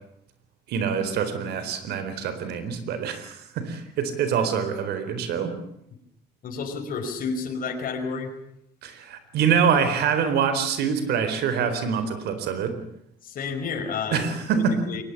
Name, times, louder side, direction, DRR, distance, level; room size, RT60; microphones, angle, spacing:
voice 1, 0.7-5.5 8.8-12.8 14.1-14.7, right 7 dB, 75° right, 10 dB, 4.2 m, -25 dB
voice 2, 6.4-8.3 13.2-14.3 14.5-15.0, left 5 dB, 55° left, 4 dB, 5.2 m, -30 dB
22.5 x 19.5 x 8.5 m, 0.74 s
cardioid pair, 110°, 17 cm